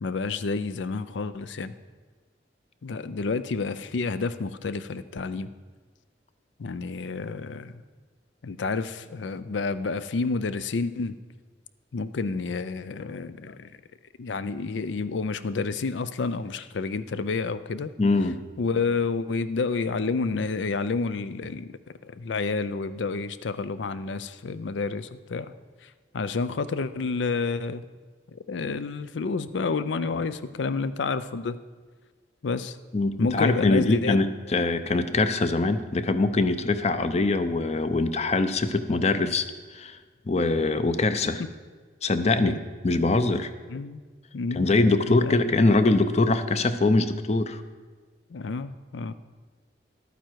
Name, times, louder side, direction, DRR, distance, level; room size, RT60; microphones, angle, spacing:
voice 1, 0.0-1.7 2.8-5.5 6.6-7.7 8.4-11.1 11.9-13.7 14.2-17.9 18.6-21.7 22.0-25.5 26.1-27.8 28.3-31.6 32.4-32.8 33.2-34.2 39.2-39.3 41.4-41.5 42.4-42.6 43.7-44.0 44.3-44.7 45.1-45.4 48.3-49.1, left 4 dB, 85° left, 14 dB, 0.5 m, -29 dB
voice 2, 18.0-18.4 32.9-39.4 39.7-40.0 40.3-41.4 42.0-42.6 42.8-43.5 44.5-47.6, left 2 dB, 35° left, 11 dB, 0.6 m, -23 dB
11.5 x 9.1 x 4.6 m, 1.4 s
head